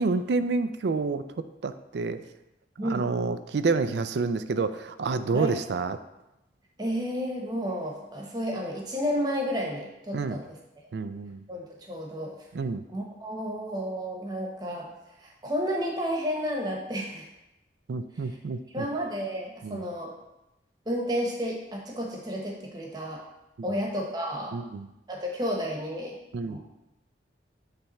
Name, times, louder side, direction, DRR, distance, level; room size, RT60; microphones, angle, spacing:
voice 1, 0.0-2.2 2.8-6.0 10.1-10.4 10.9-11.4 12.5-12.8 17.9-18.9 19.6-19.8 23.7-23.8 24.5-24.9 26.3-26.6, right 4 dB, 70° right, 11 dB, 0.4 m, -29 dB
voice 2, 6.8-10.6 11.5-12.4 12.9-14.9 15.2-17.3 18.7-20.1 20.8-23.2 23.6-24.6 25.1-26.2 26.5-26.6, equal, 20° right, -1 dB, 1.1 m, -31 dB
8.8 x 3.5 x 4.2 m, 0.94 s
head